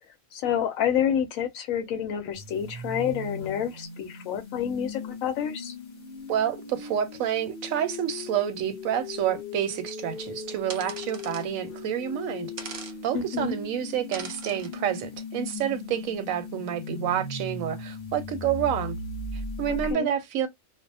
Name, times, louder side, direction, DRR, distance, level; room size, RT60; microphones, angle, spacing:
voice 1, 0.3-5.7 13.1-13.5 19.7-20.1, left 9 dB, 90° left, 1.0 m, -28 dB
sound 1, 2.3-19.9, left 3 dB, 45° left, 0.9 m, -38 dB
voice 2, 6.3-12.8 13.0-19.0 19.3-20.5, right 10 dB, 85° right, 1.0 m, -29 dB
sound 2, 10.7-11.5 12.6-13.0 14.1-14.7, right 5 dB, 65° right, 0.4 m, -39 dB
2.6 x 2.0 x 2.6 m
omnidirectional pair, 1.4 m